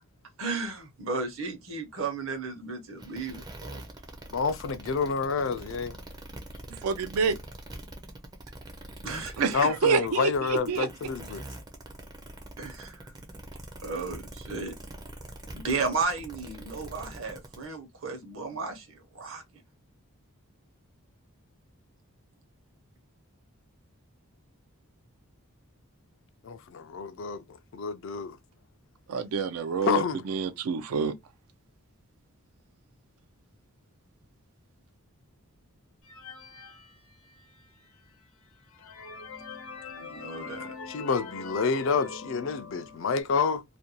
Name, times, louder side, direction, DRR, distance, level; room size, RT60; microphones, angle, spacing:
voice 1, 0.4-3.8 9.0-9.4 12.6-13.1 13.8-14.7 15.5-19.4 39.9-40.8, right 4 dB, 60° right, 0.8 m, -34 dB
sound 1, 3.0-17.6, right 1 dB, 20° right, 0.4 m, -44 dB
voice 2, 4.3-6.0 9.5-11.4 26.4-27.4 27.7-28.4 29.8-30.2 40.9-43.6, left 5 dB, 60° left, 0.4 m, -28 dB
voice 3, 6.8-7.4 9.4-10.9 29.1-31.1, right 5 dB, 80° right, 0.4 m, -27 dB
sound 2, 36.0-37.7 38.2-38.3 38.7-43.2, left 4 dB, 75° left, 0.8 m, -43 dB
2.5 x 2.2 x 2.8 m
head